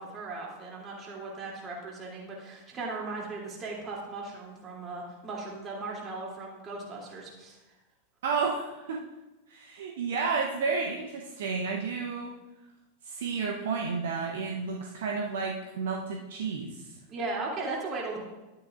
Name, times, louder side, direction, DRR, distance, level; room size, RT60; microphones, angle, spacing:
voice 1, 0.0-7.6 17.1-18.2, right 3 dB, 25° right, -3 dB, 2.9 m, -37 dB
voice 2, 8.2-9.0 9.5-12.3 13.0-16.9, right 5 dB, 60° right, 0 dB, 0.9 m, -31 dB
11.5 x 9.6 x 2.5 m, 1.1 s
figure-of-eight pair, 90°, 0 cm